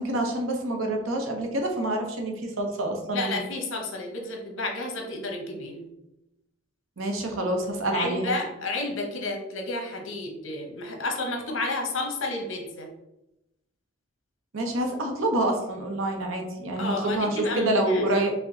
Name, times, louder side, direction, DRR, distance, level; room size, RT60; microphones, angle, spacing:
voice 1, 0.0-3.4 7.0-8.3 14.5-18.3, right 1 dB, 90° right, 2 dB, 0.8 m, -27 dB
voice 2, 3.1-5.9 7.9-12.9 16.8-18.2, left 2 dB, 75° left, 2 dB, 0.9 m, -31 dB
4.9 x 2.2 x 3.8 m, 0.91 s
head